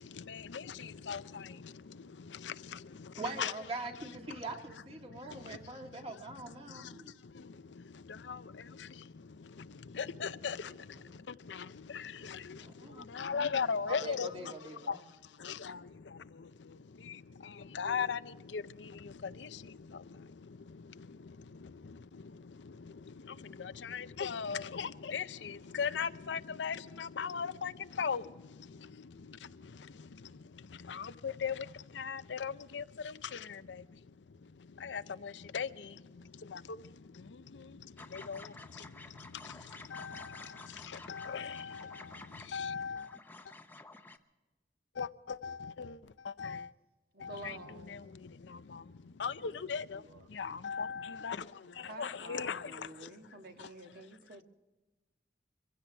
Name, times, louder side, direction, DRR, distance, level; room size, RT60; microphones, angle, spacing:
voice 1, 0.0-3.5 4.3-4.4 5.0-5.9 6.4-43.2 44.9-46.7 47.2-47.6 47.9-53.1 53.6-53.7, left 6 dB, 85° left, 0.6 m, -40 dB
voice 2, 3.1-7.2 10.9-11.2 12.6-13.1 13.6-15.0, right 2 dB, 30° right, 1.8 m, -43 dB
sound 1, 38.0-44.2, left 2 dB, 10° left, 0.7 m, -51 dB
voice 3, 47.1-48.0 49.4-54.4, right 2 dB, 55° right, 1.6 m, -51 dB
24.0 x 16.0 x 3.4 m
head